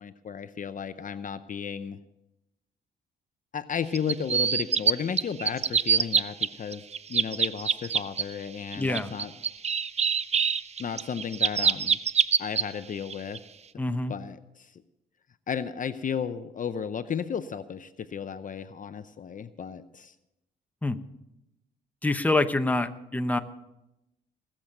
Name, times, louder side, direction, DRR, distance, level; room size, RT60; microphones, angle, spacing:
voice 1, 0.0-2.0 3.5-6.8 7.1-9.3 10.8-12.0 12.4-13.4 14.1-14.8 15.5-20.1, left 7 dB, 40° left, 12 dB, 0.7 m, -34 dB
sound 1, 3.9-4.9 5.2-6.5 6.7-8.2 8.7-12.6 13.1-13.4, right 6 dB, 35° right, 0.5 m, -24 dB
voice 2, 8.7-9.1 13.8-14.1 20.8-21.0 22.0-23.4, left 2 dB, 10° left, 8 dB, 0.9 m, -26 dB
20.0 x 7.4 x 6.6 m, 0.91 s
cardioid pair, 90°, 20 cm